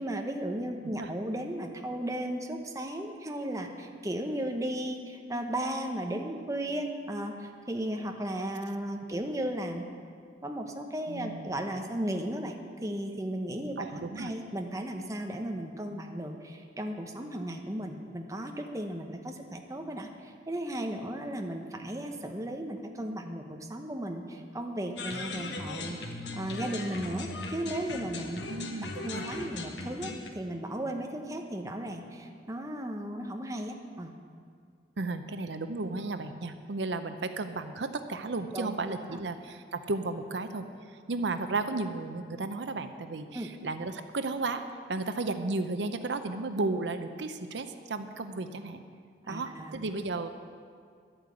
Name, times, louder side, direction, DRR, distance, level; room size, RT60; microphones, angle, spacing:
voice 1, 0.0-9.9 10.4-13.8 14.2-28.4 29.0-34.2 38.5-38.7 39.1-39.2 43.3-43.5 49.2-49.8, right 1 dB, 20° right, 3 dB, 1.0 m, -35 dB
voice 2, 11.1-11.6 13.8-14.3 28.5-29.3 35.0-40.7 41.1-44.6 44.9-48.8 49.3-50.3, right 3 dB, 80° right, 9 dB, 0.7 m, -34 dB
sound 1, 25.0-30.3, left 2 dB, 75° left, 1.2 m, -38 dB
11.5 x 8.9 x 8.2 m, 2.2 s
head